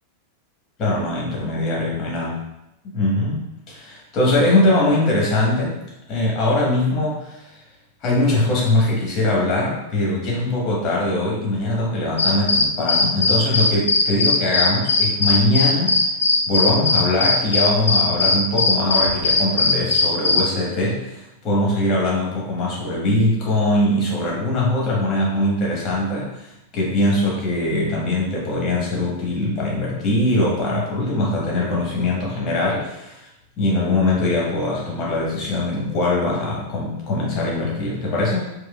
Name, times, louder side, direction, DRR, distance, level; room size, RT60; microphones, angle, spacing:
voice 1, 0.8-2.4 2.8-5.8 6.1-7.5 8.0-16.0 16.5-33.2 33.6-38.4, left 1 dB, 30° left, -4 dB, 1.3 m, -21 dB
sound 1, 12.2-20.4, left 3 dB, 75° left, 0.4 m, -18 dB
4.8 x 2.3 x 2.3 m, 0.89 s
figure-of-eight pair, 90°, 0 cm